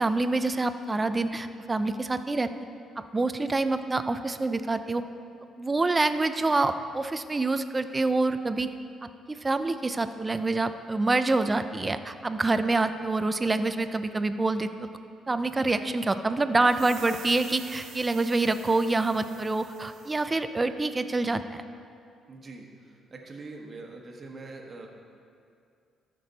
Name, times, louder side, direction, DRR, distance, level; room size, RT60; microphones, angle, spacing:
voice 1, 0.0-2.5 3.0-5.0 5.6-8.7 9.3-14.7 15.3-21.6, right 2 dB, 20° right, 10 dB, 0.5 m, -26 dB
sound 1, 16.6-20.3, right 8 dB, 70° right, 0.5 m, -47 dB
voice 2, 22.3-24.9, right 3 dB, 40° right, 1 dB, 1.3 m, -44 dB
13.5 x 6.1 x 4.0 m, 2.4 s
cardioid pair, 90°, 0 cm